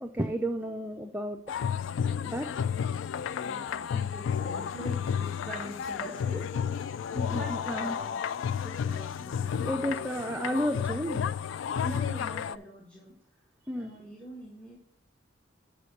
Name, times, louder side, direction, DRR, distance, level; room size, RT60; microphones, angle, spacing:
voice 1, 0.0-1.4 2.2-2.5 7.1-8.0 9.6-11.3 13.7-13.9, equal, 10° right, 3 dB, 0.5 m, -32 dB
sound 1, 1.5-12.6, left 7 dB, 75° left, 0.3 m, -32 dB
voice 2, 3.4-6.8 7.3-8.2 8.6-10.0 11.8-13.1 13.7-14.8, equal, 5° left, -2 dB, 1.4 m, -43 dB
6.8 x 4.9 x 6.5 m, 0.65 s
head